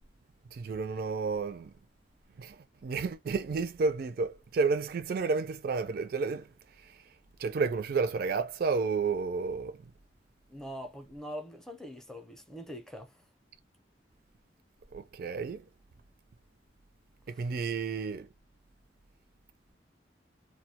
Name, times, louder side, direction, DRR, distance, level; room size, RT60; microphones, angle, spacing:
voice 1, 0.5-1.7 2.4-7.1 7.4-9.9 14.9-15.7 17.3-18.3, right 4 dB, 55° right, 0.3 m, -31 dB
voice 2, 10.5-13.1, equal, 5° left, 0.5 m, -43 dB
2.3 x 2.2 x 2.7 m
head